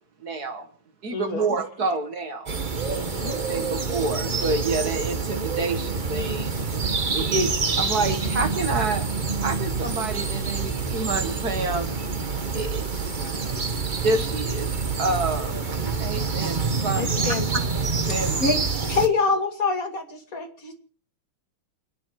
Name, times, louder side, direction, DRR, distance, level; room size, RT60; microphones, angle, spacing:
voice 1, 0.2-0.7 1.0-2.5 3.5-6.6 7.1-9.1 9.4-11.9 12.5-13.4 14.0-14.7 15.0-15.6 16.0-17.2 18.1-18.4, right 3 dB, 50° right, 8 dB, 2.0 m, -28 dB
voice 2, 1.1-1.6 2.9-3.5 17.0-17.6 18.1-18.4, left 6 dB, 85° left, 7 dB, 2.7 m, -34 dB
sound 1, 2.5-19.1, right 4 dB, 30° right, 1.0 m, -27 dB
voice 3, 18.1-20.8, left 4 dB, 40° left, 4 dB, 2.7 m, -25 dB
28.5 x 10.0 x 4.7 m, 0.43 s
omnidirectional pair, 2.2 m